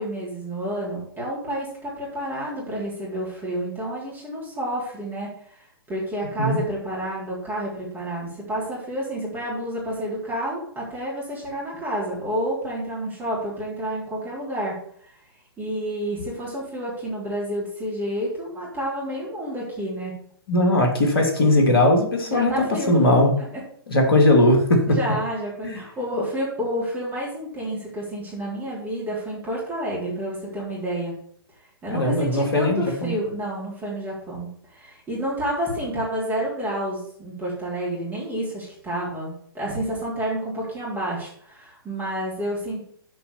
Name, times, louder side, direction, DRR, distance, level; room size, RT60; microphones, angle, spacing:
voice 1, 0.0-5.6 5.9-14.8 15.0-15.1 15.6-20.1 22.3-22.9 24.9-31.1 31.8-42.8, right 1 dB, 15° right, -6 dB, 3.7 m, -29 dB
voice 2, 20.5-23.3 23.9-25.0 25.6-25.8 31.9-33.1, left 1 dB, 70° left, 3 dB, 2.4 m, -19 dB
7.0 x 5.1 x 7.0 m, 0.63 s
figure-of-eight pair, 115°, 13 cm